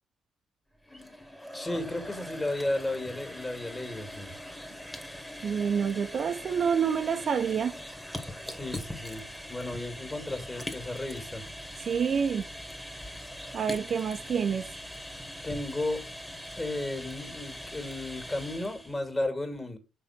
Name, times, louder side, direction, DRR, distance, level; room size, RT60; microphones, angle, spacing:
sound 1, 0.7-19.0, equal, 5° left, 1.9 m, -42 dB
voice 1, 1.5-4.3 8.4-11.4 15.4-16.0 16.6-19.8, left 2 dB, 20° left, 2.6 m, -34 dB
voice 2, 5.4-7.8 11.8-12.5 13.5-14.7, right 7 dB, 55° right, 0.7 m, -28 dB
6.6 x 4.8 x 6.0 m
cardioid pair, 90°, 0 cm